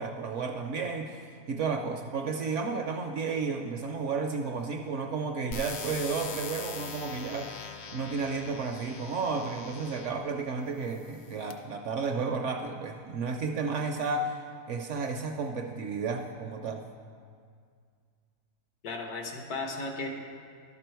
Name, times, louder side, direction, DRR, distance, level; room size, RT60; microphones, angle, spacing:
voice 1, 0.0-16.9, right 4 dB, 65° right, 4 dB, 0.8 m, -32 dB
sound 1, 5.5-10.3 11.0-11.5, left 5 dB, 60° left, 0.8 m, -42 dB
voice 2, 18.8-20.1, left 3 dB, 80° left, 2 dB, 1.5 m, -35 dB
11.5 x 6.0 x 4.5 m, 2.1 s
omnidirectional pair, 1.6 m